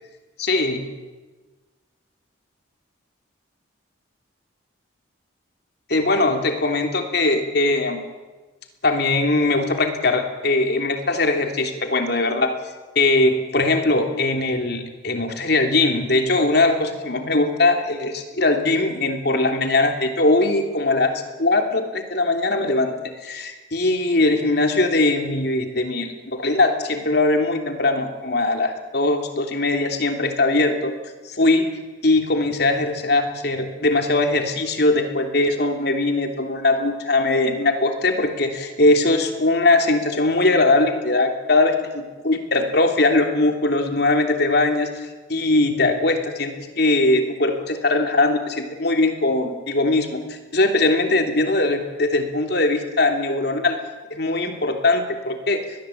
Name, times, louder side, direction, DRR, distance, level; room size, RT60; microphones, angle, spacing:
voice 1, 0.4-0.8 5.9-8.0 8.8-12.5 12.9-30.9 31.2-31.6 32.0-44.9 45.3-53.7 54.1-55.6, left 2 dB, 55° left, 5 dB, 3.2 m, -20 dB
23.0 x 20.5 x 8.6 m, 1.2 s
head